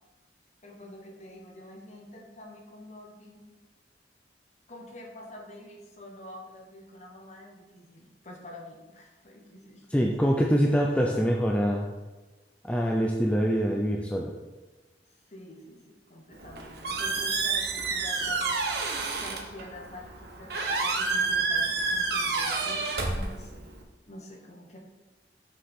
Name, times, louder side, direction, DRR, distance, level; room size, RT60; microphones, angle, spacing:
voice 1, 0.6-3.5 4.7-10.1 15.2-23.7 24.1-24.8, left 1 dB, 40° left, 0 dB, 1.3 m, -47 dB
voice 2, 9.9-11.9 12.6-14.3, equal, 5° left, -1 dB, 0.5 m, -24 dB
Squeak, 16.3-23.8, right 4 dB, 60° right, 1.0 m, -29 dB
6.9 x 6.5 x 3.7 m, 1.2 s
head